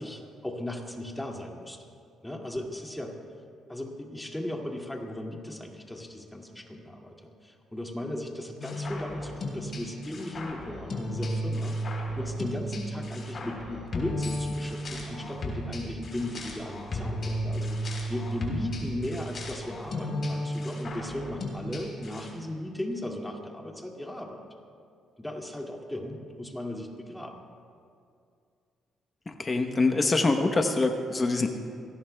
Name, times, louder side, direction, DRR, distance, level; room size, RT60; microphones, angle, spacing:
voice 1, 0.0-1.9 2.2-3.2 3.7-24.4 25.2-27.4, left 1 dB, 10° left, 0 dB, 2.2 m, -37 dB
sound 1, 8.6-22.3, equal, 50° left, 3.7 m, -34 dB
voice 2, 29.3-31.5, left 3 dB, 30° left, 5 dB, 0.9 m, -25 dB
24.0 x 18.5 x 2.3 m, 2.4 s
cardioid pair, 90°, 0 cm